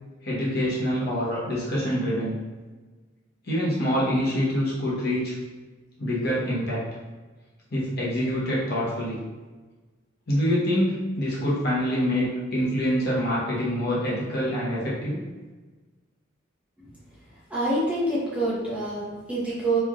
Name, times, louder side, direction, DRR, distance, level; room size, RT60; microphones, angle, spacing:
voice 1, 0.2-2.3 3.4-5.4 6.0-6.8 7.7-9.2 10.3-15.2, equal, 55° left, -6 dB, 0.9 m, -25 dB
voice 2, 17.5-19.8, right 1 dB, 5° right, -9 dB, 0.7 m, -26 dB
3.2 x 2.5 x 2.3 m, 1.3 s
head